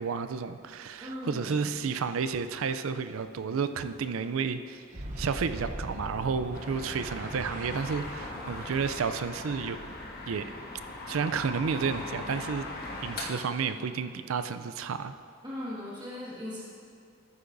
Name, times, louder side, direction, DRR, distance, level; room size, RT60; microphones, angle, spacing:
voice 1, 0.0-9.8 10.3-10.5 11.1-12.6 13.0-15.1, right 5 dB, 90° right, 11 dB, 0.4 m, -31 dB
voice 2, 1.0-1.7 15.4-16.6, left 1 dB, 20° right, -8 dB, 1.9 m, -38 dB
Boom, 4.9-11.5, right 1 dB, 40° right, 0.9 m, -42 dB
sound 1, 6.5-13.3, left 2 dB, 50° left, 1.2 m, -40 dB
13.5 x 9.7 x 2.6 m, 2.4 s
head